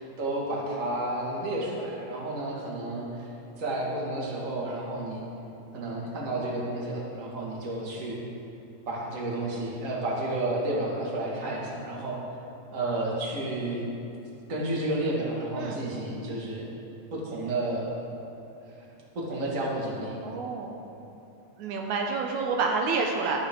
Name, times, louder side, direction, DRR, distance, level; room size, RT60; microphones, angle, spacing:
voice 1, 0.0-3.3 3.6-5.2 5.7-8.2 8.9-12.2 12.7-13.9 14.5-16.7 17.1-18.0 18.7-18.8 19.1-20.2, right 1 dB, 30° right, -4 dB, 2.1 m, -31 dB
voice 2, 20.2-20.8 21.6-23.4, right 4 dB, 75° right, 1 dB, 2.2 m, -28 dB
14.0 x 12.5 x 3.9 m, 2.9 s
omnidirectional pair, 3.5 m